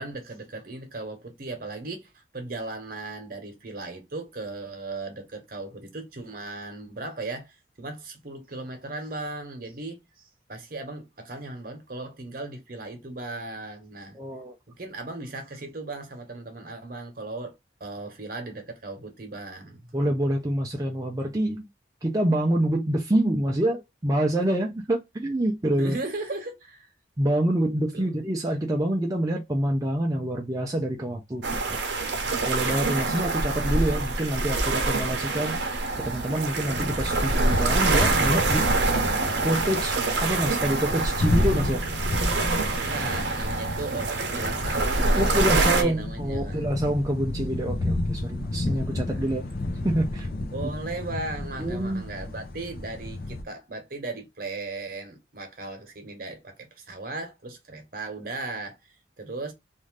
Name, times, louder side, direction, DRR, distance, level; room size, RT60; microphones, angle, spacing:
voice 1, 0.0-10.0 10.5-14.2 14.7-17.5 17.8-19.8 25.8-26.9 27.9-28.2 42.8-46.7 49.1-49.2 50.5-59.5, right 2 dB, 50° right, 0.9 m, -37 dB
voice 2, 14.1-14.5 19.9-21.7 22.0-26.0 27.2-32.0 32.5-35.6 36.0-38.7 39.4-41.8 45.2-49.4 49.8-50.3 51.6-52.0, right 1 dB, 20° right, 0.4 m, -26 dB
sound 1, 31.4-45.8, right 3 dB, 75° right, 0.7 m, -25 dB
sound 2, 36.6-53.4, left 2 dB, 55° left, 0.6 m, -32 dB
2.6 x 2.4 x 3.2 m
head